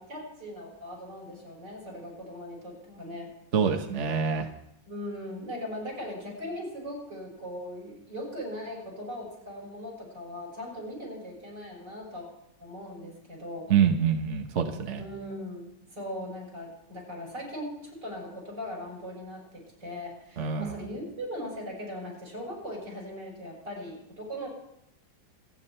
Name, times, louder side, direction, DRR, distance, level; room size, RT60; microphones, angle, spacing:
voice 1, 0.0-3.3 4.9-12.3 12.6-13.7 15.0-24.5, equal, 65° right, -2 dB, 6.9 m, -39 dB
voice 2, 3.5-4.5 13.7-15.0 20.4-20.7, right 7 dB, 45° right, 5 dB, 1.2 m, -25 dB
27.5 x 9.6 x 4.4 m, 0.77 s
omnidirectional pair, 2.0 m